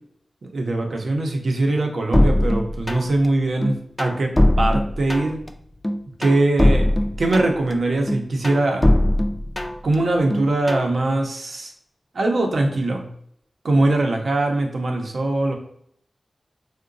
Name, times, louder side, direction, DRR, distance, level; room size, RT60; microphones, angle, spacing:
voice 1, 0.5-5.4 6.2-6.9 7.2-8.8 9.8-11.7 12.1-13.0 13.6-15.5, right 2 dB, 75° right, 2 dB, 0.6 m, -21 dB
sound 1, 2.1-3.3 3.6-5.5 5.8-7.7 8.1-10.0 10.3-10.9, left 1 dB, 20° left, 0.3 m, -20 dB
3.7 x 2.1 x 2.5 m, 0.68 s
wide cardioid pair, 90°, 0 cm